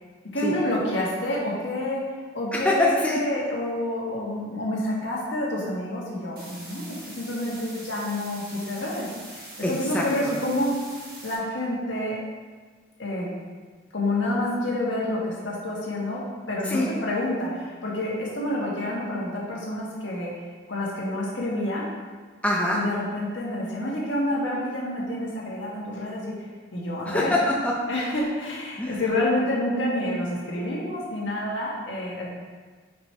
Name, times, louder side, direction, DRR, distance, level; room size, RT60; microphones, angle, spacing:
voice 1, 0.3-2.0 2.3-10.7 11.2-12.2 13.0-13.3 13.9-16.2 16.5-20.3 20.7-21.9 22.7-26.3 26.7-27.3 27.9-32.3, left 1 dB, 70° left, -5 dB, 1.5 m, -28 dB
voice 2, 2.5-3.2 9.6-10.0 16.7-16.9 22.4-22.8 27.1-27.7 28.8-28.9, left 1 dB, 5° left, -3 dB, 0.5 m, -24 dB
sound 1, 6.4-11.4, right 1 dB, 45° right, 1.4 m, -43 dB
5.1 x 4.5 x 4.6 m, 1.5 s
head